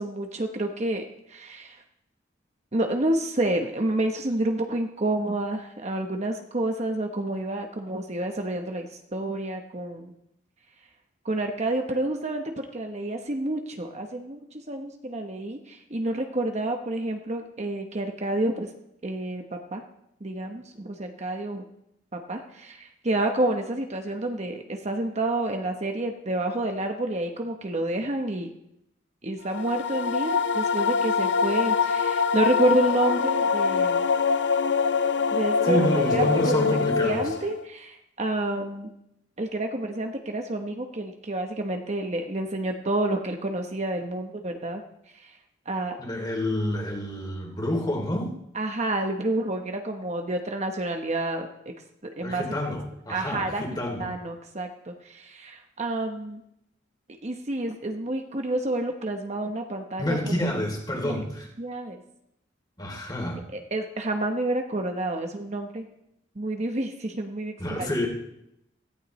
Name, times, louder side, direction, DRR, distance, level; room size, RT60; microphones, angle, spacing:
voice 1, 0.0-1.8 2.7-10.1 11.2-18.7 19.0-19.8 20.2-21.7 22.1-28.5 29.2-34.1 35.3-38.9 39.4-44.8 45.1-45.4 45.7-46.0 48.5-51.7 52.2-52.4 53.1-56.4 57.2-60.2 60.5-60.6 61.0-61.2 61.6-62.0 63.5-65.9 66.3-67.9, right 1 dB, 40° right, 4 dB, 1.0 m, -29 dB
sound 1, 29.5-37.6, left 5 dB, 70° left, 0.6 m, -24 dB
voice 2, 35.6-37.2 46.0-48.4 52.2-54.1 60.0-61.4 62.8-63.4 67.6-68.1, left 1 dB, 25° left, 0 dB, 2.9 m, -28 dB
17.0 x 15.0 x 3.2 m, 0.82 s
head